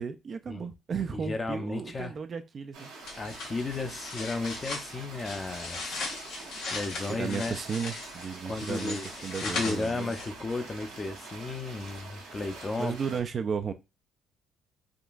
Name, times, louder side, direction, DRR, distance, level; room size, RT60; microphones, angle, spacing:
voice 1, 0.0-2.9 6.9-10.1 12.8-13.7, right 6 dB, 45° right, 0.4 m, -34 dB
voice 2, 1.1-2.1 3.2-6.0 6.7-7.6 8.4-9.1 9.4-13.0, left 3 dB, 30° left, 0.6 m, -34 dB
sound 1, 2.7-13.2, right 3 dB, 85° right, 1.0 m, -45 dB
sound 2, 3.0-10.5, left 3 dB, 75° left, 1.1 m, -38 dB
3.7 x 2.3 x 2.4 m
supercardioid pair, 70°, 0 cm